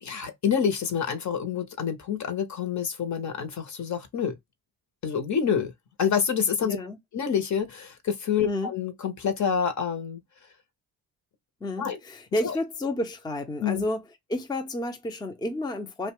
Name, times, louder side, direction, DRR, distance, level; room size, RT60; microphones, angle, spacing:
voice 1, 0.0-4.4 5.0-5.7 6.0-6.8 7.1-10.2 11.8-12.0 12.4-12.6 13.6-13.8, left 7 dB, 50° left, 0.8 m, -27 dB
voice 2, 6.6-7.0 8.4-8.7 11.6-14.0 14.3-16.1, left 1 dB, 10° left, 0.5 m, -30 dB
2.7 x 2.1 x 2.9 m
cardioid pair, 100°, 37 cm